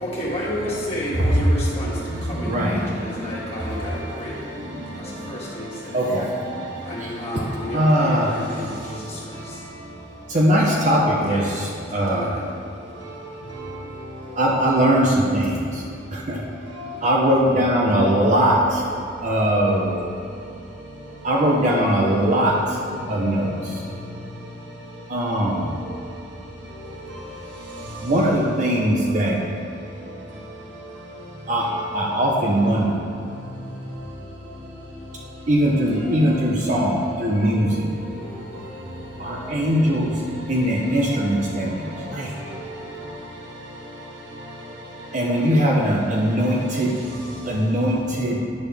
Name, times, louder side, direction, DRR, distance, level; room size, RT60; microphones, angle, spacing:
voice 1, 0.0-2.0 2.3-4.3 5.0-5.9 6.9-9.6 11.3-11.4 11.9-12.3, equal, 30° left, -7 dB, 1.8 m, -31 dB
voice 2, 1.1-5.9 6.5-7.8 8.7-9.8 13.0-14.4 16.7-17.0 20.7-21.1 23.0-23.5 23.9-24.3 26.7-28.1 30.3-31.3 32.7-33.7 33.9-34.0 37.4-37.6 38.1-39.6 41.7-45.1 47.4-47.5, equal, 65° right, -3 dB, 1.3 m, -32 dB
voice 3, 2.5-2.8 5.9-6.4 7.0-7.4 7.7-8.3 10.3-12.4 14.4-15.8 16.1-16.4 17.0-18.8 19.2-20.0 21.2-22.8 23.1-23.8 25.1-25.7 28.0-29.4 31.5-33.0 35.5-37.9 39.2-42.4 45.1-47.0 47.4-48.4, equal, 40° right, -2 dB, 0.7 m, -21 dB
9.2 x 6.4 x 3.4 m, 2.4 s
head